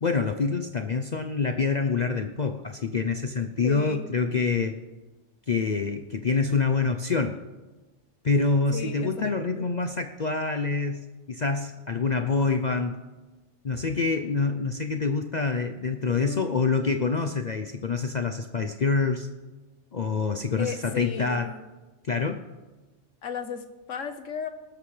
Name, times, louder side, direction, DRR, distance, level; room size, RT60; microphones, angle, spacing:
voice 1, 0.0-4.7 5.5-7.4 8.2-13.0 13.6-19.3 19.9-21.5 22.1-22.4, left 4 dB, 45° left, 6 dB, 0.6 m, -26 dB
voice 2, 3.6-4.1 8.7-9.6 16.1-16.5 20.6-21.6 23.2-24.5, left 6 dB, 75° left, 8 dB, 1.4 m, -35 dB
19.0 x 13.0 x 3.3 m, 1.2 s
omnidirectional pair, 1.3 m